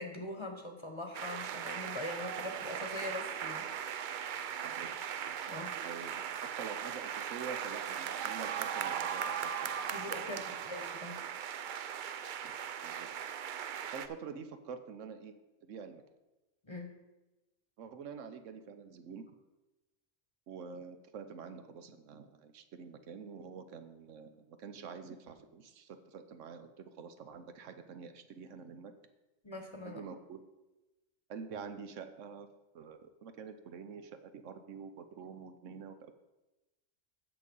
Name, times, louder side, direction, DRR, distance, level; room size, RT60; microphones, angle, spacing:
voice 1, 0.0-3.7 5.4-5.8 9.9-11.2 16.6-16.9 29.4-30.0, left 1 dB, 25° left, 4 dB, 1.0 m, -42 dB
sound 1, 1.1-14.1, right 8 dB, 65° right, 0.5 m, -38 dB
voice 2, 5.8-10.4 12.4-12.5 12.8-13.1 13.9-15.3 15.6-16.0 17.8-19.3 20.5-28.9 29.8-30.4 31.3-32.5 32.7-36.1, right 6 dB, 80° right, 9 dB, 1.1 m, -47 dB
9.1 x 6.7 x 5.3 m, 1.1 s
omnidirectional pair, 1.3 m